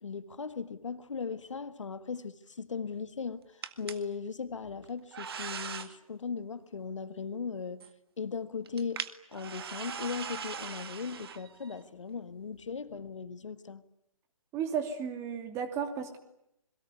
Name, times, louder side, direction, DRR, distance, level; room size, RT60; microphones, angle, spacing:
voice 1, 0.0-7.9 8.2-9.0 9.3-13.8, left 5 dB, 60° left, 1.7 m, -38 dB
sound 1, 3.6-4.0 4.8-5.9 7.8-7.9 8.7-11.8, right 7 dB, 45° right, 1.9 m, -40 dB
voice 2, 14.5-16.2, right 7 dB, 15° right, 2.6 m, -34 dB
27.5 x 22.5 x 9.5 m
figure-of-eight pair, 140°, 18 cm